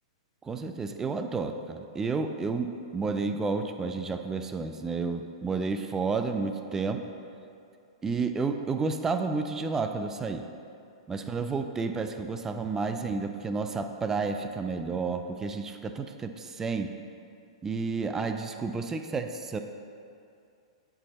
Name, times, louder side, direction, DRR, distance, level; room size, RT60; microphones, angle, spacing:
voice 1, 0.4-7.0 8.0-10.5 11.1-16.9 17.6-19.6, right 4 dB, 15° right, 6 dB, 0.4 m, -31 dB
8.5 x 4.6 x 4.1 m, 2.5 s
hypercardioid pair, 115°, 3 cm